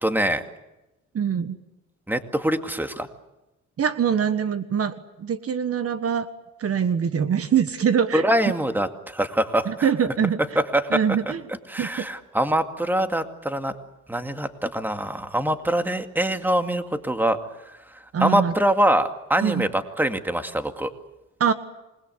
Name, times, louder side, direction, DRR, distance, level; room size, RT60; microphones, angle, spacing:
voice 1, 0.0-0.4 2.1-3.1 8.1-9.9 10.7-10.8 11.7-13.7 14.1-17.4 18.2-20.9, right 1 dB, 5° right, 7 dB, 2.2 m, -24 dB
voice 2, 1.1-1.6 3.8-6.3 6.6-8.3 9.6-10.4 10.9-11.4 11.8-12.1 18.1-18.5 19.4-19.7 21.4-21.5, right 7 dB, 50° right, 10 dB, 1.5 m, -23 dB
27.5 x 21.0 x 8.1 m, 0.97 s
cardioid pair, 90°, 30 cm